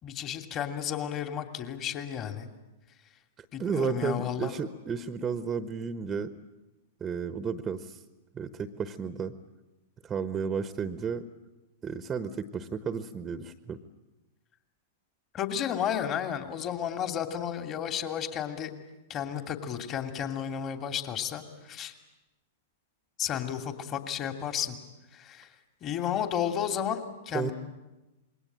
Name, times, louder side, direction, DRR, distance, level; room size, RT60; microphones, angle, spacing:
voice 1, 0.0-2.5 3.5-4.5 15.3-18.7 19.1-21.9 23.2-24.8 25.1-25.5 25.8-27.0 27.3-27.5, left 9 dB, 30° left, 6 dB, 2.8 m, -32 dB
voice 2, 3.4-6.3 7.0-8.0 8.3-9.3 10.0-11.3 11.8-13.8 27.3-27.5, right 6 dB, 20° right, 11 dB, 1.3 m, -33 dB
27.0 x 22.5 x 8.9 m, 1.0 s
figure-of-eight pair, 100°, 0 cm